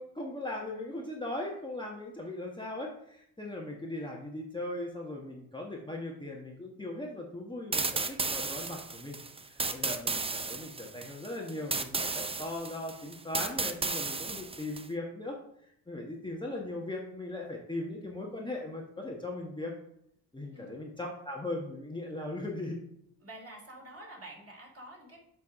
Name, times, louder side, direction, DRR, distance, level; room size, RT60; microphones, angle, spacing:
voice 1, 0.0-9.2 9.5-19.7 20.3-22.8, left 2 dB, 10° left, -2 dB, 1.3 m, -39 dB
sound 1, 7.7-14.9, right 4 dB, 15° right, 0.4 m, -34 dB
voice 2, 23.2-25.2, right 1 dB, 30° right, -1 dB, 2.8 m, -48 dB
7.4 x 3.5 x 5.4 m, 0.71 s
supercardioid pair, 70°, 44 cm